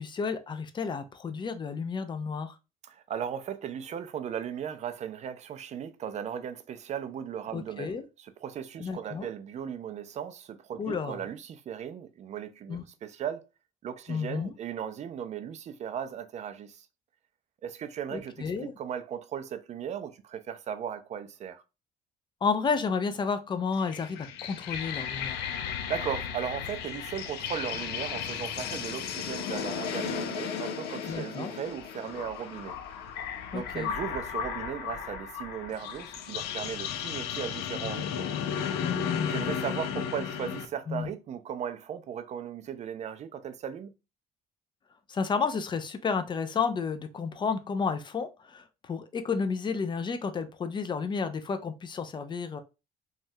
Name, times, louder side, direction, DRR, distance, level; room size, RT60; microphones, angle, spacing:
voice 1, 0.0-2.5 7.5-8.0 8.8-9.3 10.8-11.3 12.7-12.8 14.1-14.5 18.1-18.7 22.4-25.4 31.1-31.5 33.5-33.9 38.8-39.5 40.9-41.1 45.1-52.6, left 5 dB, 25° left, 0.4 m, -31 dB
voice 2, 2.8-13.4 13.8-16.9 17.6-21.6 25.9-32.8 33.5-38.3 39.3-43.9, right 8 dB, 45° right, 0.4 m, -37 dB
sound 1, 23.7-40.7, left 8 dB, 85° left, 0.5 m, -35 dB
3.1 x 2.3 x 2.6 m
cardioid pair, 110°, 17 cm